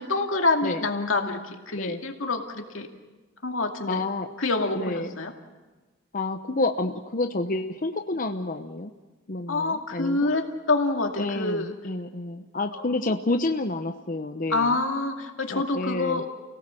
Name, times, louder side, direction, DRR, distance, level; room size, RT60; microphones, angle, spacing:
voice 1, 0.0-1.4 1.7-2.9 3.4-4.0 4.4-5.3 9.5-11.7 12.7-12.8 14.5-16.3, left 3 dB, 85° left, 3 dB, 2.4 m, -26 dB
voice 2, 3.9-4.3 4.7-5.1 6.1-8.9 9.3-10.3 11.2-14.7 15.5-16.2, left 2 dB, 45° left, 6 dB, 0.9 m, -29 dB
29.5 x 17.5 x 7.7 m, 1.2 s
head